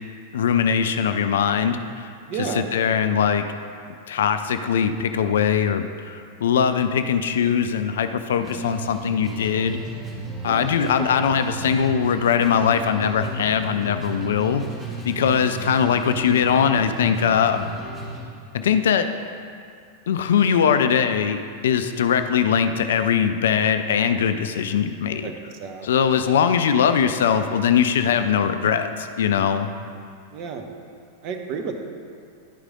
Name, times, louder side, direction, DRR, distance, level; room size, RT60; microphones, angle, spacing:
voice 1, 0.3-2.1 2.5-3.4 4.1-9.8 10.4-14.6 15.1-17.7 18.5-19.1 20.1-25.3 25.8-29.7, left 7 dB, 60° left, 9 dB, 0.3 m, -21 dB
voice 2, 2.3-2.7 10.4-10.7 11.0-11.1 25.2-26.3 30.3-30.7 31.2-31.7, right 6 dB, 40° right, 4 dB, 0.8 m, -32 dB
sound 1, 8.4-18.2, right 2 dB, 10° right, 1.4 m, -34 dB
10.5 x 4.8 x 3.7 m, 2.2 s
figure-of-eight pair, 90°, 0 cm